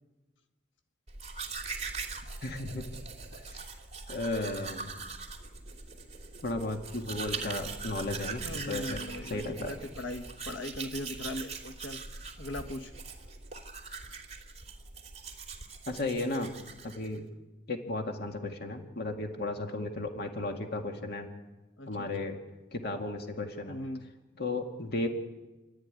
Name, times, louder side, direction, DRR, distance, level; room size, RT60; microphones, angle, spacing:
Domestic sounds home sounds, 1.1-17.2, right 4 dB, 35° right, 2.9 m, -41 dB
voice 1, 2.4-2.9 3.5-3.7 4.1-4.9 6.4-9.7 15.9-16.5 16.8-17.2 17.7-21.3 21.9-22.4 22.7-23.8 24.4-25.1, left 2 dB, 60° left, 3 dB, 2.2 m, -34 dB
voice 2, 8.4-12.0 12.4-12.9 21.8-22.1 23.7-24.1, left 1 dB, 85° left, 7 dB, 1.6 m, -39 dB
28.5 x 12.5 x 9.8 m, 1.1 s
head